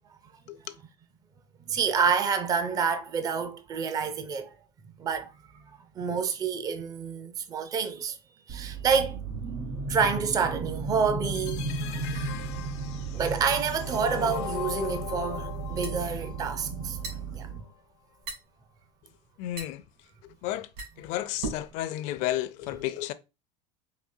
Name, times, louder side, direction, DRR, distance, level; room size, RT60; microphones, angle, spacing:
voice 1, 1.7-4.5 5.0-8.2 8.5-9.2 9.9-12.3 13.1-17.0 17.3-17.7, right 6 dB, 25° right, 0.5 m, -28 dB
sound 1, 8.5-17.6, right 4 dB, 45° right, 1.1 m, -35 dB
sound 2, 11.2-17.2, left 12 dB, 85° left, 0.8 m, -39 dB
sound 3, 15.5-21.8, right 3 dB, 65° right, 2.7 m, -41 dB
voice 2, 19.4-19.8 20.2-20.7 21.0-23.1, left 14 dB, 60° left, 0.5 m, -32 dB
5.0 x 2.8 x 2.6 m
supercardioid pair, 130°, 14 cm